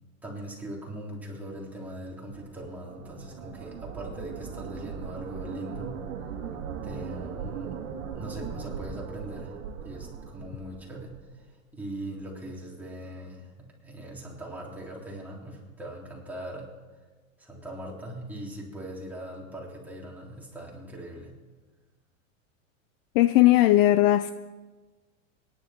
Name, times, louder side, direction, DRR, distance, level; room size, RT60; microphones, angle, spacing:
voice 1, 0.2-6.0 6.8-7.9 8.1-16.7 17.4-21.3, right 1 dB, 5° right, -4 dB, 3.6 m, -40 dB
sound 1, 2.1-11.3, right 7 dB, 75° right, 2.1 m, -39 dB
voice 2, 23.1-24.3, left 15 dB, 45° left, 13 dB, 0.5 m, -18 dB
23.5 x 11.0 x 4.4 m, 1.3 s
supercardioid pair, 140°, 40 cm